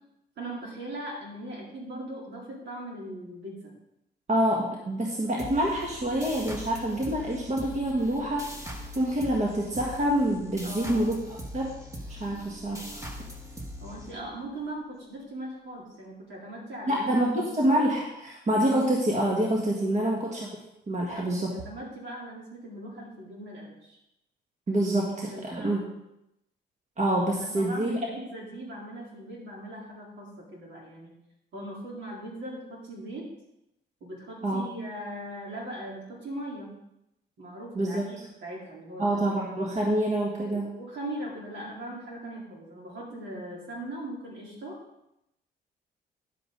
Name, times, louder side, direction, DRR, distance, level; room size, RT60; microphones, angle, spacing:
voice 1, 0.4-3.7 10.6-11.1 13.8-17.1 17.5-17.6 21.1-24.0 25.0-25.9 27.4-31.1 31.5-33.3 34.0-36.7 37.4-39.3 40.5-44.8, right 1 dB, 70° right, -3 dB, 3.8 m, -40 dB
voice 2, 4.3-11.7 12.1-12.9 16.9-20.5 20.9-21.6 24.7-25.8 27.0-27.9 34.4-34.6 37.7-38.1 39.0-40.7, right 1 dB, 35° right, -2 dB, 1.8 m, -27 dB
sound 1, 5.4-14.6, equal, 15° right, 1.6 m, -41 dB
10.5 x 7.6 x 3.9 m, 0.85 s
cardioid pair, 90°, 20 cm